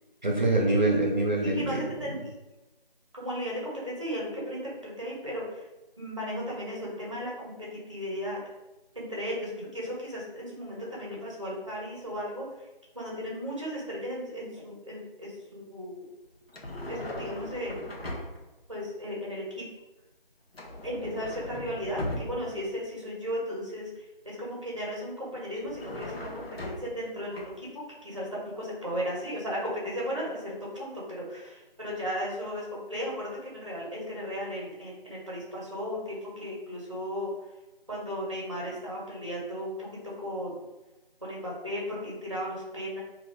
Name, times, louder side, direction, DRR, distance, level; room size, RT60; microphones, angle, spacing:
voice 1, 0.2-2.2, right 2 dB, 50° right, 0 dB, 0.8 m, -25 dB
voice 2, 1.5-2.2 3.1-5.7 6.0-8.4 8.9-12.7 12.9-16.1 16.9-17.8 18.7-19.6 20.8-37.3 37.9-39.9 40.2-40.6 41.2-43.0, equal, 30° right, -4 dB, 1.0 m, -35 dB
sound 1, 16.5-18.6 20.5-22.7 25.5-27.1 27.3-27.5, left 1 dB, 90° left, 1.0 m, -38 dB
2.8 x 2.2 x 4.1 m, 1.1 s
figure-of-eight pair, 175°, 29 cm